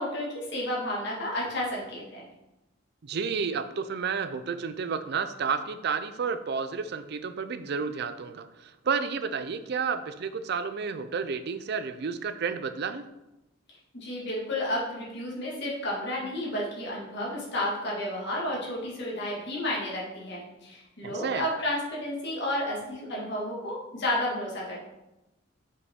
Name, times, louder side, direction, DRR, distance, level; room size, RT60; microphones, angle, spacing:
voice 1, 0.0-2.2 14.0-24.7, left 1 dB, 55° left, -4 dB, 2.0 m, -31 dB
voice 2, 3.0-13.0 21.0-21.4, right 5 dB, 55° right, 11 dB, 0.4 m, -31 dB
6.3 x 5.3 x 3.6 m, 0.96 s
head